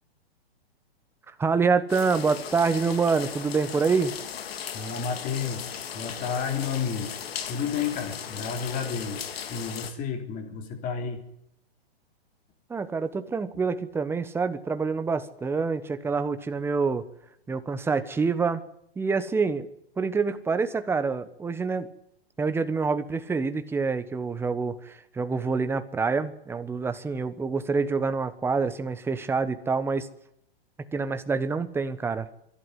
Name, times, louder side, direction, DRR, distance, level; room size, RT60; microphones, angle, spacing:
voice 1, 1.4-4.1 12.7-17.0 17.5-18.6 19.0-19.7 20.0-21.9 22.4-30.1 30.9-32.3, right 4 dB, 5° right, 11 dB, 1.1 m, -26 dB
Hard rain, 1.9-9.9, left 8 dB, 70° left, 3.3 m, -37 dB
voice 2, 4.7-7.1 7.5-11.2, left 6 dB, 25° left, 6 dB, 3.6 m, -31 dB
24.5 x 11.5 x 9.5 m, 0.76 s
hypercardioid pair, 140°, 31 cm